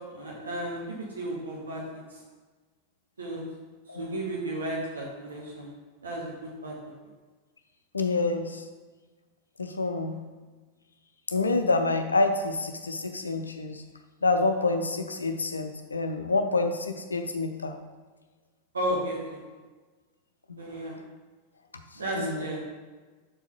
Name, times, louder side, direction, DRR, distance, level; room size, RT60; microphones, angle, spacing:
voice 1, 0.1-2.2 3.2-3.4 4.0-5.7 6.0-6.9 18.7-19.4 20.6-21.0 22.0-22.7, right 1 dB, 70° right, -2 dB, 0.9 m, -34 dB
voice 2, 7.9-8.6 9.6-10.2 11.3-13.8 14.2-17.8 20.5-20.6 22.1-22.4, left 3 dB, 75° left, 7 dB, 0.5 m, -27 dB
6.9 x 4.4 x 3.7 m, 1.3 s
figure-of-eight pair, 90°, 0 cm